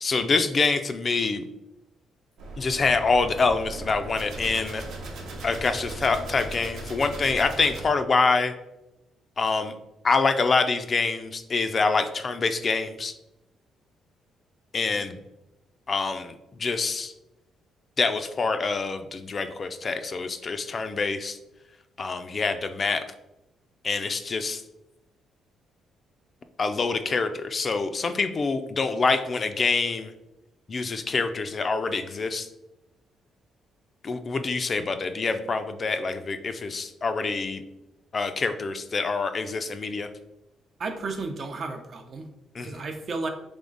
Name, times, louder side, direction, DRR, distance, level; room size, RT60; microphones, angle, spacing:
voice 1, 0.0-1.5 2.6-4.8 5.4-8.5 9.4-9.7 10.0-13.1 14.7-15.2 15.9-16.3 16.6-17.1 18.0-21.4 22.0-23.0 23.8-24.6 26.6-30.1 30.7-32.5 34.0-37.6 38.1-40.1 42.6-42.8, left 4 dB, 40° left, 8 dB, 0.4 m, -26 dB
sound 1, 2.4-7.9, right 2 dB, 80° right, 0.9 m, -38 dB
voice 2, 40.8-42.3 42.6-43.3, right 3 dB, 50° right, 5 dB, 0.6 m, -33 dB
3.5 x 3.2 x 3.9 m, 0.92 s
cardioid pair, 90°, 0 cm